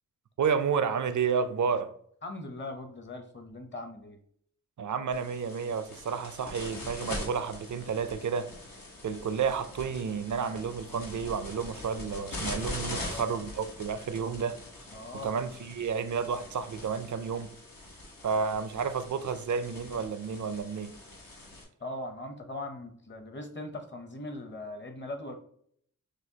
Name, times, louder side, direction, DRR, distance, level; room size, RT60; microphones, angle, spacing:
voice 1, 0.4-1.9 4.8-8.5 9.0-14.6 15.2-17.5 18.2-20.9, right 6 dB, 60° right, 11 dB, 0.5 m, -31 dB
voice 2, 2.2-4.2 12.8-13.5 14.9-15.3 21.8-25.3, left 1 dB, 35° left, 5 dB, 0.8 m, -40 dB
sound 1, 5.1-21.6, left 2 dB, 80° left, 1.2 m, -43 dB
6.2 x 2.3 x 2.8 m, 0.64 s
wide cardioid pair, 70°, 33 cm